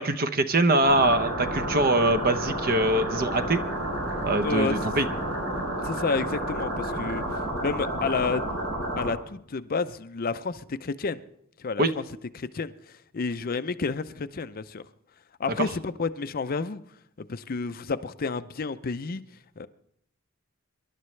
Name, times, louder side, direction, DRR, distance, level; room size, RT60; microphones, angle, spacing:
voice 1, 0.0-3.6 4.2-5.1 11.8-11.9 15.6-15.7, right 2 dB, 45° right, 0.8 m, -23 dB
sound 1, 0.8-9.1, right 1 dB, 90° right, 7.9 m, -30 dB
voice 2, 4.4-4.8 5.8-7.2 7.6-8.4 9.0-11.2 11.6-12.0 12.3-14.8 15.4-16.8 17.2-19.2 19.6-19.7, left 4 dB, 45° left, 0.5 m, -30 dB
26.0 x 12.0 x 3.2 m
head